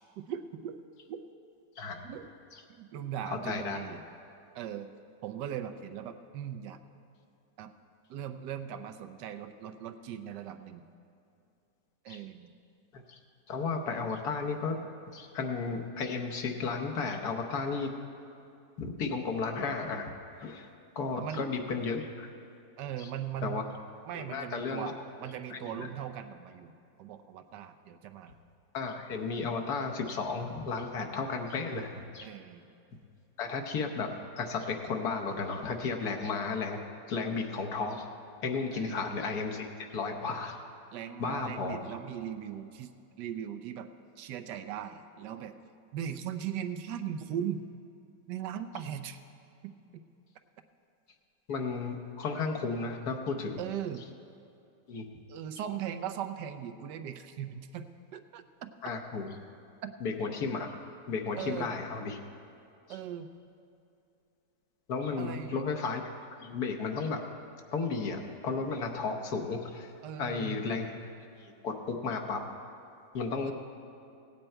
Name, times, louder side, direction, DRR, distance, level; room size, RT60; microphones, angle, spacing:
voice 1, 0.2-0.8 1.1-1.2 2.0-2.3 2.8-4.0 4.5-4.9 5.2-6.8 7.6-7.7 8.1-10.8 12.0-12.5 21.2-21.5 22.8-23.6 24.0-24.9 25.2-26.7 27.0-28.4 32.2-32.6 38.7-39.2 40.9-42.9 43.2-43.9 44.2-45.5 45.9-47.6 48.3-49.2 49.6-50.0 53.6-54.1 55.3-58.7 59.8-59.9 61.4-61.7 62.9-63.3 65.2-65.6 70.0-70.6, right 9 dB, 85° right, 9 dB, 1.3 m, -39 dB
voice 2, 3.2-3.8 12.1-12.2 12.9-13.2 13.5-14.8 15.1-17.9 18.8-20.1 20.4-20.7 20.9-22.3 23.0-23.1 23.4-23.6 24.1-24.9 25.5-25.9 28.7-32.3 33.4-36.8 37.1-38.1 38.4-40.6 41.2-42.0 51.5-53.6 54.9-55.1 58.8-59.3 60.0-60.8 61.1-62.2 64.9-66.0 66.4-67.2 67.7-69.9 70.2-71.1 71.4-72.4 73.1-73.5, left 4 dB, 70° left, 2 dB, 1.4 m, -34 dB
16.5 x 9.1 x 4.4 m, 2.6 s
omnidirectional pair, 1.8 m